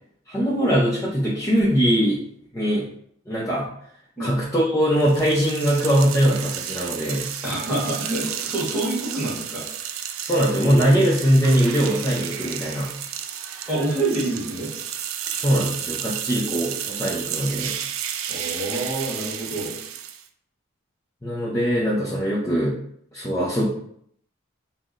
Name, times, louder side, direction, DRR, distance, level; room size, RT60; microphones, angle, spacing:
voice 1, 0.3-2.2 2.5-2.9 3.3-3.7 4.2-7.3 10.2-12.9 15.3-17.8 21.2-22.8 23.1-23.7, equal, 15° left, -6 dB, 0.5 m, -21 dB
sound 1, 5.0-20.3, right 9 dB, 90° right, 0.4 m, -32 dB
voice 2, 7.4-9.6 13.7-14.7 18.3-19.8, right 2 dB, 5° right, -6 dB, 1.3 m, -27 dB
5.7 x 2.0 x 2.4 m, 0.68 s
head